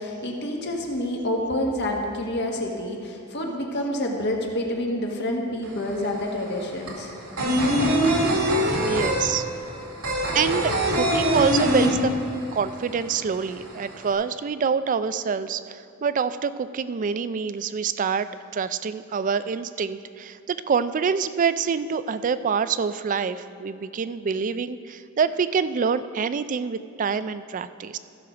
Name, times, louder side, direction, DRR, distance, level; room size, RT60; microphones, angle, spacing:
voice 1, 0.0-7.1, left 1 dB, 55° left, 1 dB, 1.4 m, -28 dB
sound 1, 5.6-5.7 6.0-12.6 12.8-12.9 13.3-14.1, equal, 85° right, 2.0 m, -22 dB
voice 2, 8.8-9.5 10.3-12.1 12.5-28.0, right 6 dB, 40° right, 14 dB, 0.3 m, -26 dB
14.5 x 6.4 x 5.0 m, 2.8 s
head